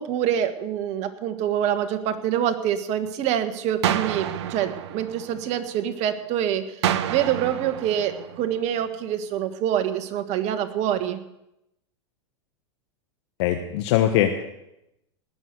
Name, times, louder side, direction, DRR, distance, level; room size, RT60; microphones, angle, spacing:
voice 1, 0.0-6.8 7.1-11.2, right 10 dB, 50° right, 9 dB, 1.6 m, -26 dB
sound 1, 3.8-5.9 6.8-8.9, right 10 dB, 70° right, 1.0 m, -29 dB
voice 2, 13.4-14.4, left 11 dB, 65° left, 5 dB, 1.3 m, -21 dB
19.0 x 7.0 x 8.1 m, 0.86 s
hypercardioid pair, 100°, 15 cm